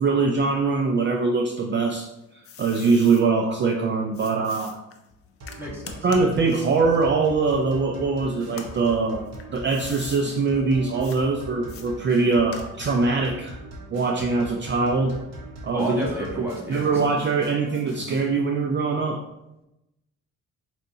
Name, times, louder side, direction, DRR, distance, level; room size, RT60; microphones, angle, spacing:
voice 1, 0.0-2.1 2.6-4.8 6.0-9.2 9.5-13.6 13.9-15.2 15.6-16.1 16.4-19.2, right 4 dB, 40° right, 2 dB, 0.4 m, -22 dB
sound 1, 1.8-3.2 4.1-8.0 8.5-10.2 11.0-11.2 11.7-13.0, left 6 dB, 50° left, 0.5 m, -44 dB
sound 2, 5.4-18.3, right 1 dB, 60° right, 1.1 m, -41 dB
voice 2, 5.6-6.0 15.7-16.9, equal, 5° right, -4 dB, 1.3 m, -31 dB
4.4 x 2.7 x 2.6 m, 0.90 s
cardioid pair, 90°, 30 cm